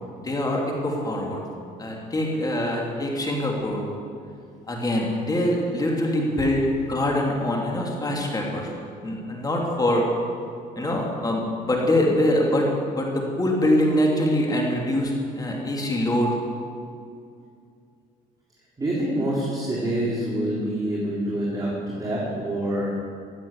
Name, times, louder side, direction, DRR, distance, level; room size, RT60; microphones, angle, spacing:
voice 1, 0.2-1.4 1.8-3.8 4.7-8.7 9.0-10.0 10.8-12.6 12.9-16.3, left 1 dB, 20° left, -1 dB, 3.0 m, -24 dB
voice 2, 18.8-22.9, right 1 dB, 20° right, -5 dB, 3.3 m, -26 dB
14.5 x 8.3 x 8.8 m, 2.3 s
cardioid pair, 110°, 17 cm